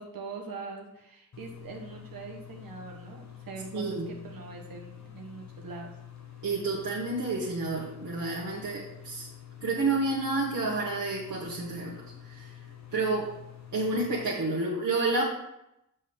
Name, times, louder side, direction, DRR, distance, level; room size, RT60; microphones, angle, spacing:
voice 1, 0.0-5.9 13.0-13.1, right 4 dB, 80° right, 0 dB, 1.2 m, -43 dB
sound 1, 1.3-14.3, left 10 dB, 55° left, 1.1 m, -48 dB
voice 2, 3.7-4.1 6.4-9.3 9.6-12.5 12.9-13.3 13.7-15.2, right 3 dB, 65° right, -6 dB, 1.8 m, -30 dB
7.3 x 6.7 x 3.5 m, 0.85 s
cardioid pair, 50°, 34 cm